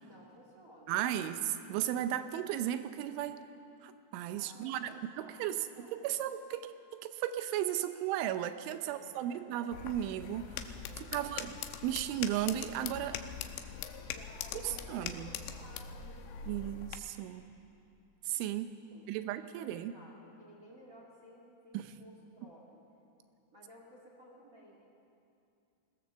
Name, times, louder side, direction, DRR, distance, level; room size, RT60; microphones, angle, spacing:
voice 1, 0.0-1.3 4.3-6.1 6.5-6.6 8.8-9.7 10.9-11.5 14.1-16.7 18.9-22.8 23.5-24.8, equal, 60° right, -2 dB, 0.8 m, -57 dB
voice 2, 0.9-1.4 1.7-3.4 3.8-6.6 7.0-11.6 11.8-13.2 14.6-15.3 16.5-17.4 18.2-18.7 19.1-19.9 21.7-21.9, right 11 dB, 80° right, 10 dB, 2.9 m, -35 dB
sound 1, 9.7-17.0, left 8 dB, 80° left, 3.0 m, -42 dB
21.5 x 17.5 x 6.9 m, 2.6 s
omnidirectional pair, 6.0 m